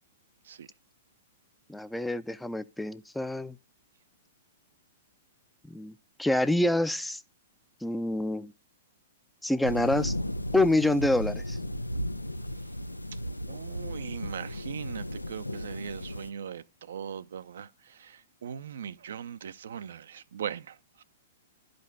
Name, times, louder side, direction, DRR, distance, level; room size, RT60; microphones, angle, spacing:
voice 1, 1.7-3.6 5.7-5.9 6.2-7.2 7.8-8.5 9.4-10.1 10.5-11.6, left 1 dB, 5° left, 0.6 m, -27 dB
sound 1, 9.6-16.3, equal, 90° left, 0.6 m, -35 dB
voice 2, 13.5-21.0, right 8 dB, 60° right, 0.6 m, -40 dB
12.0 x 5.2 x 8.0 m
figure-of-eight pair, 105°, 0 cm